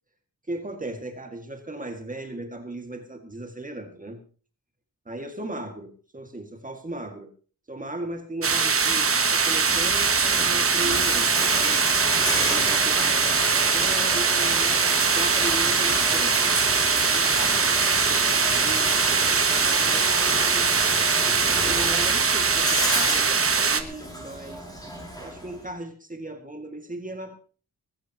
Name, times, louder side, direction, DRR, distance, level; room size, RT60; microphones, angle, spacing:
voice 1, 0.5-4.2 5.1-7.3 7.7-11.9 12.4-14.7 15.1-20.1 21.6-24.6 25.2-27.3, right 1 dB, 20° right, 5 dB, 2.1 m, -37 dB
sound 1, 8.4-23.8, right 5 dB, 35° right, 1.3 m, -22 dB
Bathtub (filling or washing), 9.7-25.6, equal, 10° left, 7.4 m, -31 dB
21.0 x 15.0 x 3.0 m, 0.38 s
wide cardioid pair, 155°, 37 cm